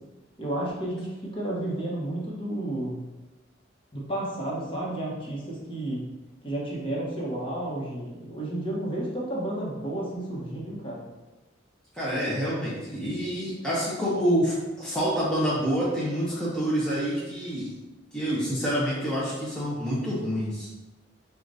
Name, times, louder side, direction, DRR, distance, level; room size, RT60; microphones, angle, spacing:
voice 1, 0.4-3.0 3.9-6.1 6.4-11.0, right 1 dB, 30° left, -4 dB, 1.1 m, -32 dB
voice 2, 11.9-17.7 18.1-20.7, equal, 5° left, -8 dB, 0.7 m, -27 dB
6.3 x 2.4 x 2.7 m, 1.1 s
head